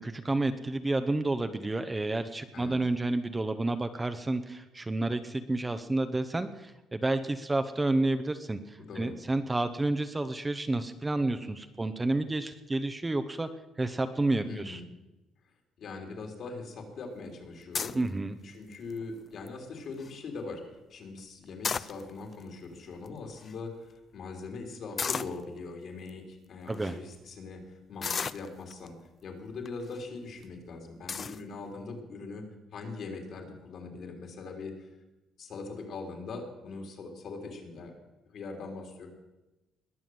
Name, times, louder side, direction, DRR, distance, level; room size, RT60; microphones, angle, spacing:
voice 1, 0.0-13.5 13.8-14.8 17.9-18.4 26.7-27.0, right 2 dB, 15° right, 9 dB, 0.8 m, -30 dB
voice 2, 8.8-9.1 14.4-14.8 15.8-18.0 18.4-20.6 20.9-28.9 29.2-34.9 35.4-37.9 38.3-39.1, left 3 dB, 55° left, 3 dB, 3.4 m, -41 dB
sound 1, 17.7-18.1 18.7-19.0 19.5-19.6 19.8-20.1 21.4-22.3 23.1-23.2 23.4-23.5 25.0-25.4 26.1-26.2 26.7-26.9 28.0-28.9 29.7-30.0 30.4-30.5 31.1-31.4, left 6 dB, 35° left, 0.5 m, -33 dB
21.0 x 7.1 x 7.7 m, 1.0 s
cardioid pair, 130°, 0 cm